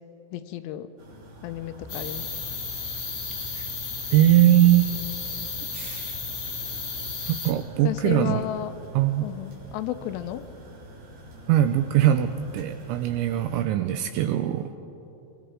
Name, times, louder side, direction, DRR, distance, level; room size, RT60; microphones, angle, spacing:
voice 1, 0.3-0.9 1.4-2.3 7.8-8.7 9.2-10.5, left 13 dB, 80° left, 10 dB, 3.0 m, -32 dB
sound 1, 1.0-13.7, equal, 55° right, 5.0 m, -46 dB
sound 2, 1.9-7.5, left 4 dB, 55° left, 1.0 m, -33 dB
voice 2, 4.1-4.9 5.7-6.2 7.3-8.5 8.9-9.3 11.5-14.7, right 12 dB, 85° right, 9 dB, 2.7 m, -21 dB
24.5 x 23.5 x 4.9 m, 3.0 s
omnidirectional pair, 5.8 m